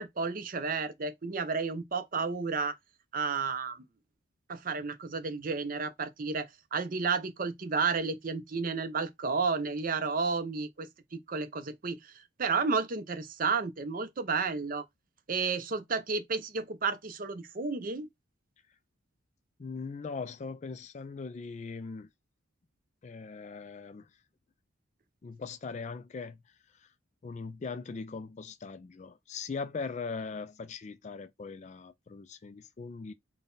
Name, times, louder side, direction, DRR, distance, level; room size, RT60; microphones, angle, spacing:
voice 1, 0.0-2.8 3.1-3.8 4.5-12.1 12.4-14.8 15.3-18.1, right 4 dB, 45° right, 0.6 m, -32 dB
voice 2, 19.6-22.1 23.0-24.1 25.2-26.4 26.7-26.9 27.2-33.1, left 4 dB, 35° left, 0.3 m, -40 dB
3.9 x 2.2 x 3.9 m
head